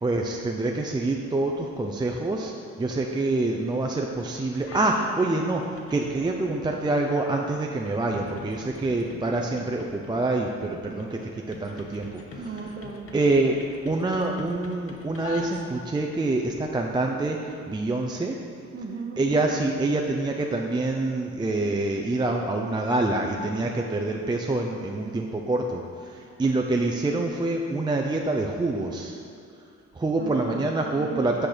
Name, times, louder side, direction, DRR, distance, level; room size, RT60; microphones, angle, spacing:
voice 1, 0.0-2.5 2.8-11.2 11.5-12.1 13.1-13.6 13.8-17.4 17.7-18.3 19.2-29.2 30.0-31.5, right 2 dB, 15° right, 1 dB, 0.5 m, -26 dB
sound 1, 4.6-5.1 5.4-16.0, left 2 dB, 45° left, 0.9 m, -45 dB
voice 2, 12.4-13.3 18.7-19.3 30.2-31.5, right 5 dB, 35° right, 3 dB, 0.9 m, -36 dB
8.5 x 4.4 x 5.0 m, 2.3 s
cardioid pair, 90°, 30 cm